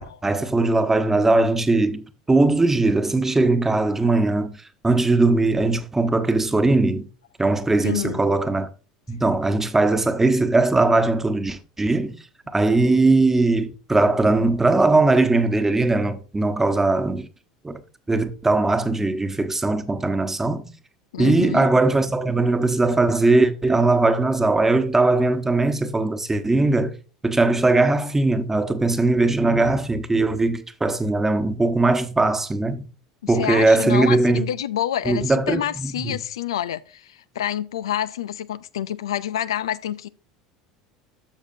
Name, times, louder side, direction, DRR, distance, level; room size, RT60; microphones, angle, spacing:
voice 1, 0.2-7.1 7.4-8.7 9.1-12.1 12.5-17.3 17.6-17.8 18.1-20.7 21.2-26.9 27.2-32.8 33.3-34.4 35.1-36.2, right 2 dB, 15° right, 1.2 m, -20 dB
voice 2, 7.8-8.2 21.1-21.7 33.2-40.1, left 11 dB, 80° left, 0.4 m, -28 dB
13.0 x 6.5 x 2.7 m
hypercardioid pair, 75°, 3 cm